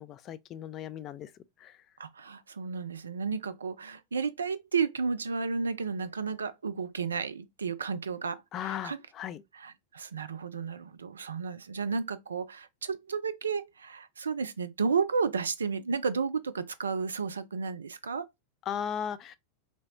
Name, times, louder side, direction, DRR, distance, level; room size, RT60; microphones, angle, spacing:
voice 1, 0.0-1.3 1.6-1.8 8.5-9.4 18.7-19.4, left 9 dB, 30° left, 0.3 m, -36 dB
voice 2, 2.0-9.0 9.5-18.3, right 5 dB, 70° right, 0.3 m, -32 dB
3.3 x 2.0 x 3.7 m
figure-of-eight pair, 90°, 0 cm